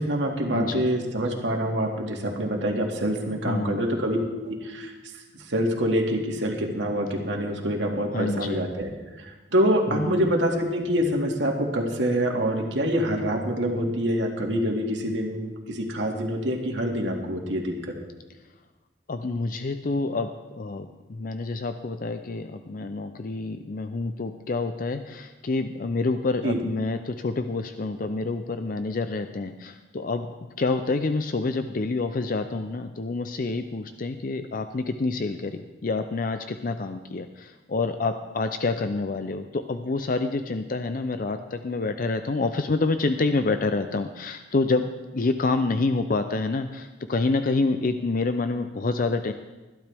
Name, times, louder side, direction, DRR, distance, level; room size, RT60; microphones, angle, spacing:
voice 1, 0.0-4.9 5.5-8.9 9.2-17.7 26.4-26.6, equal, 80° right, 1 dB, 2.1 m, -26 dB
voice 2, 0.5-0.8 3.5-3.8 8.1-8.7 9.9-10.3 19.1-44.8 45.1-49.3, left 3 dB, 50° left, 8 dB, 0.5 m, -27 dB
20.5 x 12.0 x 3.5 m, 1.2 s
head